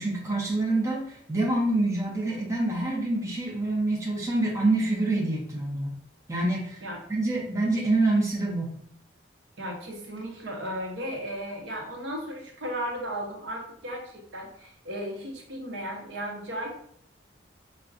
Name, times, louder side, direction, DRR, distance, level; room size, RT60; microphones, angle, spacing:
voice 1, 0.0-5.9 6.3-6.8 7.1-8.7, right 2 dB, 15° right, -3 dB, 0.5 m, -26 dB
voice 2, 9.6-16.7, equal, 70° right, 1 dB, 0.8 m, -35 dB
4.6 x 2.2 x 2.4 m, 0.64 s
head